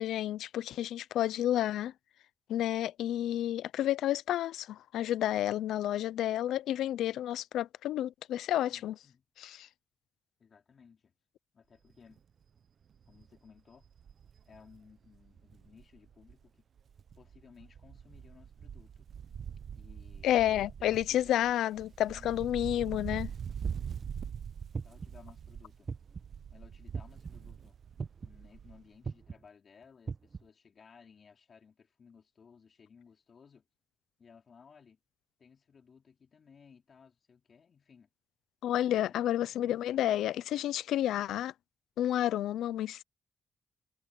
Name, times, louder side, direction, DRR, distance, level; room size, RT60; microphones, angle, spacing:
voice 1, 0.0-1.9 2.5-8.9 9.4-9.6 20.2-23.3 38.6-41.5 42.0-43.0, left 12 dB, 85° left, 0.6 m, -30 dB
voice 2, 8.7-9.3 10.4-11.1 11.5-12.2 13.1-13.9 14.4-16.7 17.1-19.1 19.7-20.3 20.8-21.6 24.8-25.9 26.5-27.8 28.2-33.6 34.2-35.0 35.4-38.1 38.9-40.1, left 6 dB, 55° left, 4.8 m, -59 dB
Wind, 11.9-12.2 12.6-12.7 12.9-16.5 16.8-28.9 29.2-29.3, right 8 dB, 65° right, 1.0 m, -44 dB
sound 1, 23.6-24.1 24.7-25.2 25.9-26.3 26.9-27.3 28.0-28.4 29.0-29.4 30.1-30.4, right 5 dB, 45° right, 1.3 m, -38 dB
supercardioid pair, 60°, 0 cm